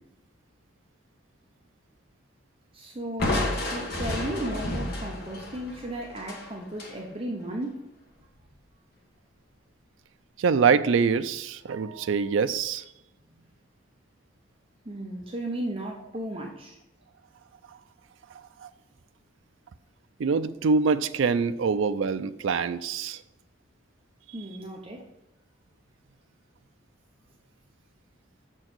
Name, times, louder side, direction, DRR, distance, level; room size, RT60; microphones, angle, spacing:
voice 1, 2.7-7.8 14.8-16.8 24.3-25.0, right 1 dB, 25° right, 0 dB, 0.8 m, -35 dB
Crushing, 3.2-7.0, left 1 dB, 50° left, 1.4 m, -31 dB
voice 2, 10.4-12.8 18.6-18.7 20.2-23.2, right 5 dB, 70° right, 11 dB, 0.4 m, -24 dB
6.5 x 4.5 x 6.0 m, 0.89 s
head